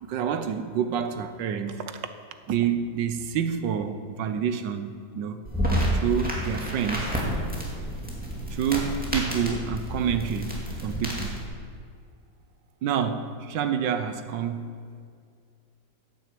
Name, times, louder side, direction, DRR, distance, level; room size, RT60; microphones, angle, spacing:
voice 1, 0.0-1.8 2.5-5.4 5.9-7.2 8.5-10.6 10.8-11.4 12.8-14.7, right 7 dB, 90° right, 9 dB, 1.5 m, -28 dB
sound 1, 5.4-11.4, equal, 5° right, 2.2 m, -29 dB
10.0 x 9.1 x 7.5 m, 2.2 s
omnidirectional pair, 1.9 m